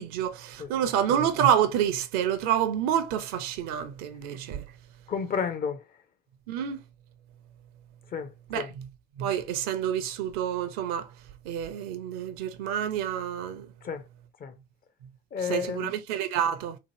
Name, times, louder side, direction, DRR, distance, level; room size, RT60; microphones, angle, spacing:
voice 1, 0.0-4.6 6.5-6.8 8.5-8.7 9.2-11.1 11.4-13.7 15.5-16.8, right 9 dB, 55° right, 0.6 m, -28 dB
voice 2, 5.1-5.9 8.1-8.7 13.8-14.1 14.4-14.5 15.3-15.9, left 6 dB, 30° left, 0.5 m, -32 dB
2.9 x 2.4 x 2.8 m
figure-of-eight pair, 60°, 31 cm